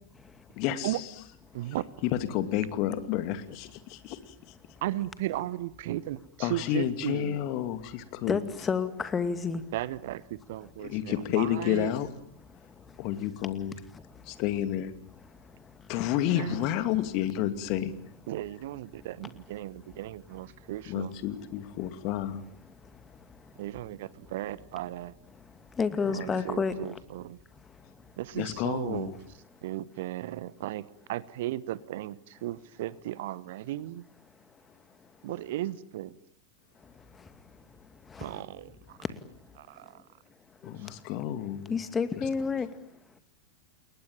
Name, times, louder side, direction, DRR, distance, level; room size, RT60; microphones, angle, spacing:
voice 1, 0.5-1.1 2.0-4.3 6.4-8.4 10.9-12.1 13.0-13.7 14.3-14.9 15.9-17.9 20.9-22.4 28.3-29.2 40.6-41.7, left 12 dB, 40° left, 2.5 m, -30 dB
voice 2, 4.8-7.4 9.7-11.9 16.4-16.7 18.3-21.1 23.6-25.1 26.1-27.4 28.2-29.1 29.6-34.0 35.2-36.1 38.2-39.0 39.6-40.0 40.8-40.9, right 15 dB, 55° right, 1.0 m, -35 dB
voice 3, 8.3-9.6 25.8-26.9 38.1-38.3 40.6-40.7 41.7-42.7, left 5 dB, 15° left, 2.3 m, -29 dB
29.5 x 21.5 x 8.9 m
figure-of-eight pair, 90°, 0 cm